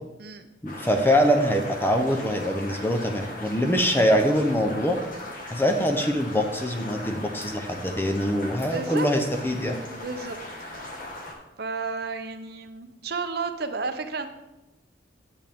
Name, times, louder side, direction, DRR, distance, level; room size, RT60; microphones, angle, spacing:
voice 1, 0.6-5.0 5.5-9.8, equal, 10° left, 4 dB, 0.6 m, -23 dB
sound 1, 0.7-11.3, left 1 dB, 45° left, 1.4 m, -39 dB
voice 2, 8.7-9.1 9.9-10.4 11.6-14.3, right 4 dB, 55° right, 8 dB, 0.7 m, -32 dB
10.0 x 7.0 x 3.5 m, 0.99 s
head